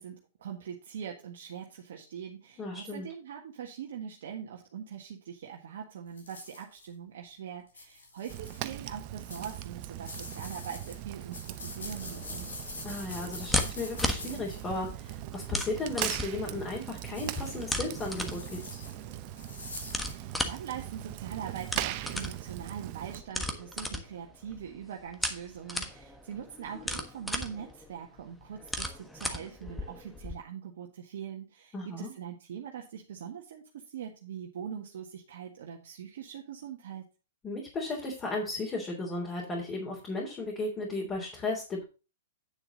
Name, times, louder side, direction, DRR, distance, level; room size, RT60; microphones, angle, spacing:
voice 1, 0.0-12.5 20.0-33.6 33.9-37.0, right 8 dB, 65° right, 1 dB, 1.5 m, -42 dB
voice 2, 2.6-3.1 12.8-18.8 31.7-32.1 37.4-41.8, left 2 dB, 20° left, -2 dB, 3.3 m, -35 dB
sound 1, 6.2-6.9 7.7-8.9 9.3-15.3 17.1-20.2, left 3 dB, 80° left, 4.2 m, -45 dB
Fire, 8.3-23.2, right 15 dB, 45° right, 0.8 m, -40 dB
sound 2, 11.8-30.3, left 1 dB, 5° left, 1.3 m, -37 dB
9.2 x 7.2 x 3.9 m, 0.32 s
hypercardioid pair, 115°, 0 cm